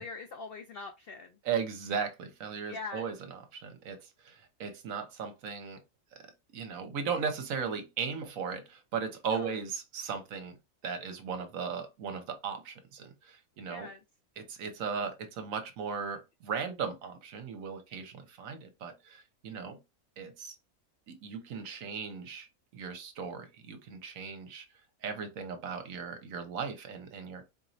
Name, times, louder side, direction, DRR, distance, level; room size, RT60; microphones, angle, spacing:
voice 1, 0.0-1.4 2.7-3.1 9.3-9.6 13.6-14.0, left 4 dB, 80° left, 0.5 m, -42 dB
voice 2, 1.4-5.8 6.2-10.6 10.8-13.9 14.4-19.8 20.2-20.5 21.1-24.7 25.0-27.5, right 6 dB, 65° right, 1.1 m, -37 dB
4.1 x 3.0 x 2.7 m
omnidirectional pair, 1.6 m